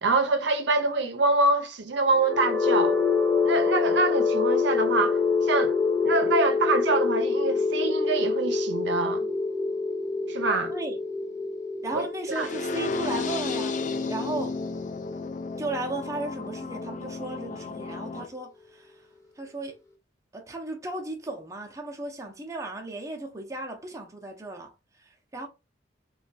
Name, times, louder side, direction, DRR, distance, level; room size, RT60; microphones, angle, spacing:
voice 1, 0.0-3.0 3.4-5.8 6.0-9.3 10.3-10.7 11.9-12.0 12.4-12.5, right 3 dB, 70° right, 0.6 m, -25 dB
sound 1, 2.1-16.0, left 4 dB, 15° left, 0.8 m, -26 dB
voice 2, 11.8-13.8 14.1-14.6 15.6-19.1 19.4-19.8 20.3-25.5, right 2 dB, 15° right, 0.6 m, -35 dB
sound 2, 12.3-18.3, left 4 dB, 40° left, 0.3 m, -33 dB
3.3 x 2.3 x 3.9 m
head